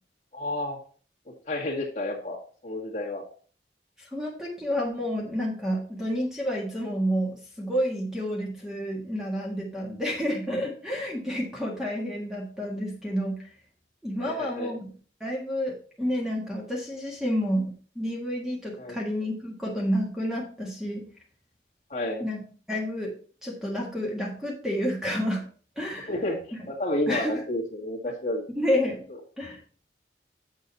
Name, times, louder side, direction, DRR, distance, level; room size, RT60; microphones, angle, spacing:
voice 1, 0.3-0.8 1.3-3.2 14.2-14.7 18.8-19.0 21.9-22.2 26.1-26.4 26.7-28.5, left 1 dB, 40° left, -3 dB, 2.0 m, -31 dB
voice 2, 4.0-13.4 14.0-14.8 15.2-21.0 22.2-22.4 22.7-23.1 23.4-25.4 25.8-26.1 27.1-27.4 28.6-29.1 29.4-29.6, equal, 5° right, -2 dB, 1.6 m, -29 dB
7.3 x 6.6 x 4.1 m, 0.41 s
head